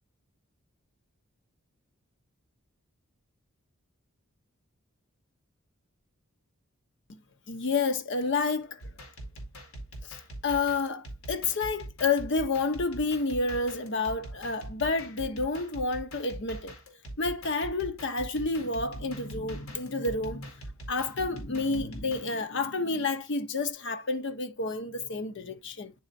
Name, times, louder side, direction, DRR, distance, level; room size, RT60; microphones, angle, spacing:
voice 1, 7.5-8.8 10.0-10.2 10.4-16.8 17.2-20.5 20.9-25.9, left 3 dB, 55° left, 0.8 m, -30 dB
sound 1, 8.8-22.3, right 1 dB, 85° left, 2.2 m, -43 dB
9.4 x 4.2 x 2.6 m
head